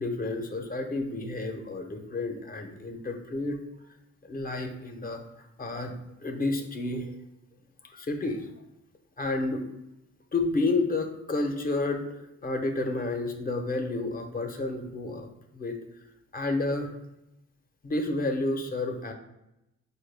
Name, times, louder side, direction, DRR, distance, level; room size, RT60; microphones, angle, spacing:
voice 1, 0.0-3.6 4.3-5.2 5.6-5.9 6.2-7.2 7.9-8.5 9.2-9.6 10.3-15.8 16.3-16.9 17.8-19.1, left 2 dB, 30° left, 4 dB, 0.6 m, -30 dB
5.1 x 2.2 x 3.3 m, 0.88 s
cardioid pair, 90°, 30 cm